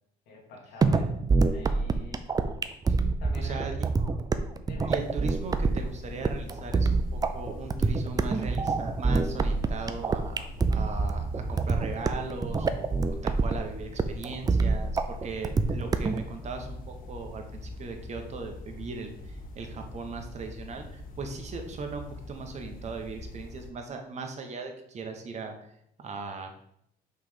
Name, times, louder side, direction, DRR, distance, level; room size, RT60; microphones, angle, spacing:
voice 1, 0.3-2.3 3.2-3.7 3.9-4.2 4.6-5.0, left 1 dB, 85° left, -1 dB, 2.1 m, -46 dB
sound 1, 0.8-16.2, right 4 dB, 20° right, 0.5 m, -26 dB
voice 2, 3.4-3.8 4.9-25.7 26.0-26.5, right 4 dB, 40° right, 4 dB, 1.1 m, -38 dB
sound 2, 4.9-23.7, left 1 dB, 55° left, 1.2 m, -43 dB
5.7 x 3.3 x 5.6 m, 0.72 s
cardioid pair, 110°, 17 cm